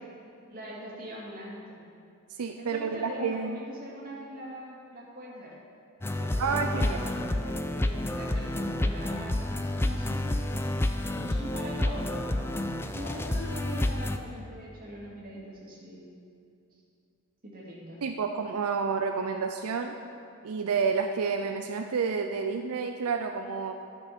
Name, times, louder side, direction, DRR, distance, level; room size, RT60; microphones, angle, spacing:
voice 1, 0.5-1.8 2.6-5.5 6.2-10.6 11.2-16.1 17.4-18.0, equal, 40° right, -5 dB, 2.4 m, -42 dB
voice 2, 2.3-3.6 6.4-7.1 18.0-19.9 20.4-23.7, right 5 dB, 85° right, 5 dB, 0.5 m, -30 dB
sound 1, 6.0-14.2, left 1 dB, 10° left, 0.3 m, -29 dB
11.5 x 6.2 x 5.9 m, 2.6 s
head